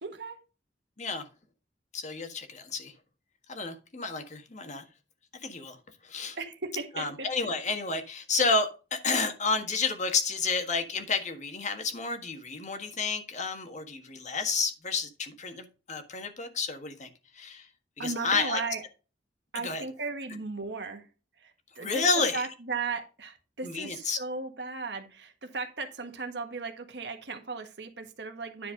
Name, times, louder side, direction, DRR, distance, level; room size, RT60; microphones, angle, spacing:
voice 1, 0.0-0.4 6.4-7.3 18.0-18.8 19.5-21.1 21.4-22.0 22.3-28.7, right 4 dB, 70° right, 6 dB, 1.5 m, -36 dB
voice 2, 1.9-2.9 3.5-4.8 5.4-5.8 6.0-6.4 7.0-17.7 18.0-18.6 19.5-19.8 21.8-22.4 23.6-24.2, left 4 dB, 45° left, 7 dB, 1.6 m, -30 dB
10.5 x 4.6 x 5.1 m, 0.33 s
head